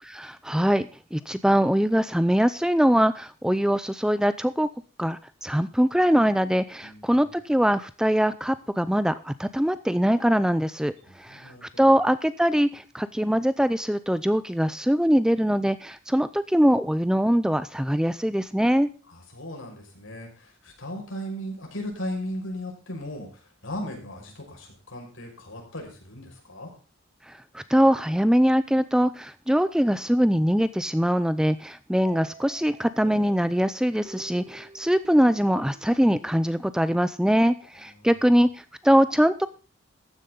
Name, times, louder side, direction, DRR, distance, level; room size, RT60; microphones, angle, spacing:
voice 1, 0.0-4.7 5.0-18.9 27.3-39.5, equal, 5° right, 14 dB, 0.5 m, -22 dB
voice 2, 6.8-7.2 11.1-11.9 19.1-26.7 38.0-38.1, equal, 70° left, 1 dB, 6.0 m, -37 dB
sound 1, 32.1-36.7, right 2 dB, 40° right, 3.2 m, -49 dB
14.5 x 10.5 x 3.9 m, 0.35 s
head